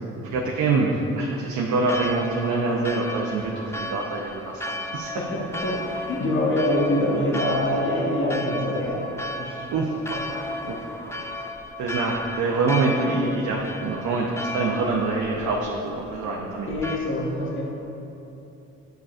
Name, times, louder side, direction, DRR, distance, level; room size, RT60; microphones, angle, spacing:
voice 1, 0.3-5.1 9.7-10.8 11.1-11.2 11.8-17.0, right 3 dB, 70° right, -2 dB, 0.7 m, -25 dB
Church bell, 1.9-17.0, left 1 dB, 10° left, 0.4 m, -34 dB
voice 2, 5.2-9.1 9.4-9.7 16.7-17.6, left 1 dB, 40° left, -3 dB, 1.2 m, -25 dB
9.1 x 4.8 x 2.5 m, 3.0 s
cardioid pair, 90°, 30 cm